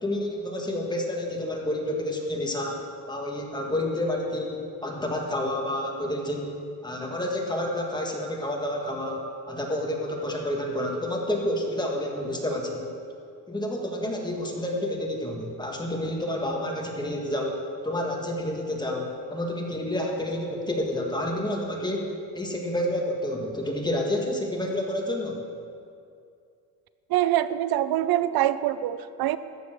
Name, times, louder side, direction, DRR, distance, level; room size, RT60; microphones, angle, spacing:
voice 1, 0.0-6.6 6.8-12.9 13.5-25.5, left 1 dB, 10° left, 0 dB, 1.7 m, -29 dB
voice 2, 27.1-29.4, right 13 dB, 75° right, 14 dB, 0.7 m, -24 dB
13.5 x 8.7 x 6.5 m, 2.4 s
cardioid pair, 130°, 36 cm